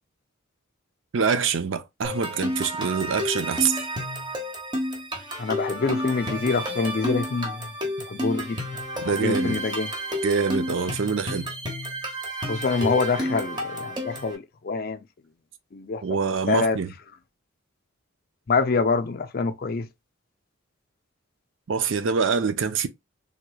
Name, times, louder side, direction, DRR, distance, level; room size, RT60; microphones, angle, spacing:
voice 1, 1.1-3.8 9.0-9.6 10.2-11.5 16.0-16.9 21.7-22.9, right 5 dB, 60° right, 0.5 m, -25 dB
sound 1, 2.0-14.4, equal, 20° right, 1.0 m, -31 dB
voice 2, 5.4-7.7 8.1-8.6 9.0-9.9 12.5-15.0 15.7-16.2 16.5-16.8 18.5-19.9, left 4 dB, 45° left, 0.4 m, -26 dB
3.4 x 3.1 x 2.2 m
head